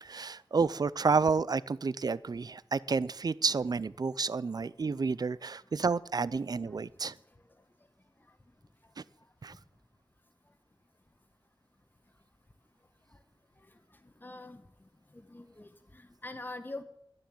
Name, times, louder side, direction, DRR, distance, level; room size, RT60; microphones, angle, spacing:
voice 1, 0.0-7.2 9.0-9.1 9.4-9.5, right 4 dB, 55° right, 19 dB, 0.5 m, -30 dB
voice 2, 14.2-14.6 15.1-16.8, left 2 dB, 25° left, 8 dB, 1.2 m, -43 dB
11.5 x 10.5 x 7.7 m, 0.76 s
wide cardioid pair, 85°, 8 cm